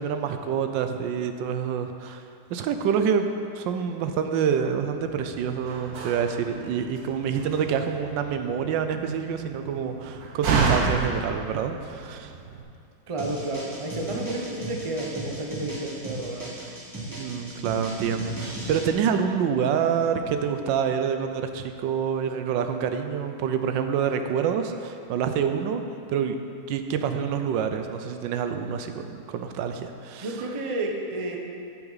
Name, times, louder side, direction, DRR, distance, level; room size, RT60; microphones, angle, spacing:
voice 1, 0.0-3.3 3.5-12.3 17.2-25.8 26.1-26.4 26.7-30.3, right 7 dB, 90° right, 7 dB, 1.3 m, -27 dB
Slam, 5.0-12.6, right 4 dB, 60° right, 1.3 m, -31 dB
voice 2, 13.1-16.6 30.2-31.4, right 2 dB, 35° right, 1 dB, 0.5 m, -31 dB
sound 1, 13.2-18.9, right 1 dB, 15° right, 1.0 m, -37 dB
13.0 x 5.9 x 4.0 m, 2.5 s
omnidirectional pair, 1.9 m